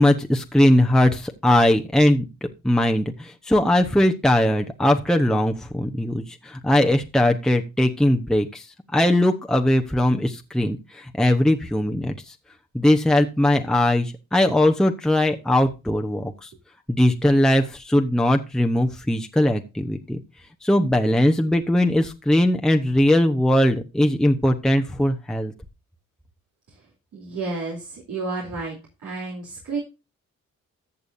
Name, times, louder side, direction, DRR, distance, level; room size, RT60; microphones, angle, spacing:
voice 1, 0.0-2.2 2.6-8.7 8.9-12.3 12.7-16.5 16.9-20.2 20.6-25.5, left 1 dB, ahead, 3 dB, 1.0 m, -20 dB
voice 2, 27.1-28.8 29.0-29.8, right 3 dB, 70° right, -3 dB, 2.9 m, -31 dB
14.0 x 6.8 x 2.7 m, 0.27 s
supercardioid pair, 55°, 33 cm